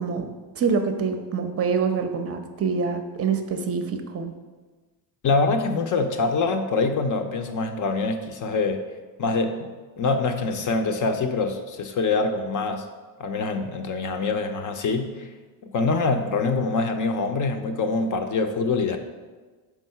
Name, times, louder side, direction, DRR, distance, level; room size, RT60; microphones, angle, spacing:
voice 1, 0.0-4.3, right 5 dB, 30° right, 7 dB, 0.6 m, -26 dB
voice 2, 5.2-8.8 9.2-12.8 13.2-15.3 15.6-19.0, left 3 dB, 40° left, 6 dB, 0.6 m, -25 dB
4.7 x 3.7 x 5.5 m, 1.3 s
cardioid pair, 100°, 48 cm